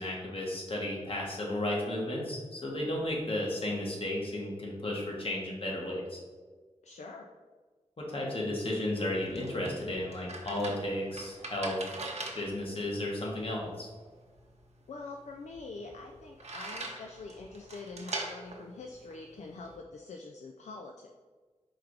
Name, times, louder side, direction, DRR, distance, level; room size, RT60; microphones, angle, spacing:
voice 1, 0.0-6.2 8.0-11.8 12.3-13.9, left 1 dB, 50° left, -3 dB, 1.3 m, -33 dB
voice 2, 6.8-7.3 14.9-21.1, left 3 dB, 70° left, 2 dB, 0.4 m, -45 dB
sound 1, 8.9-19.8, right 2 dB, 60° right, 0.8 m, -43 dB
4.7 x 2.4 x 4.6 m, 1.4 s
wide cardioid pair, 65°, 12 cm